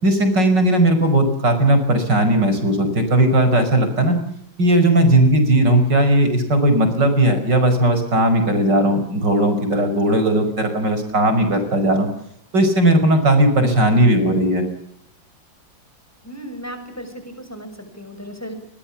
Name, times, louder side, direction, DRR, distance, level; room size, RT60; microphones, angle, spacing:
voice 1, 0.0-4.2 4.6-12.1 12.5-14.6, right 1 dB, 60° right, 8 dB, 5.9 m, -17 dB
voice 2, 16.2-17.7 18.0-18.5, equal, 5° left, 8 dB, 6.5 m, -35 dB
29.0 x 22.5 x 7.3 m, 0.74 s
omnidirectional pair, 2.1 m